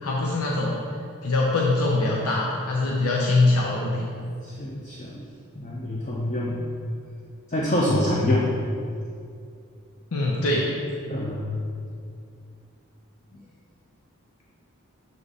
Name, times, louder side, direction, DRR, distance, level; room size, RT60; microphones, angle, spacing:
voice 1, 0.0-0.8 1.2-4.1 10.1-10.7, left 2 dB, 90° left, -3 dB, 0.7 m, -23 dB
voice 2, 4.4-5.2 5.6-6.6 7.5-8.5 11.1-11.6, left 1 dB, 35° left, -4 dB, 0.5 m, -25 dB
6.6 x 3.5 x 4.0 m, 2.3 s
head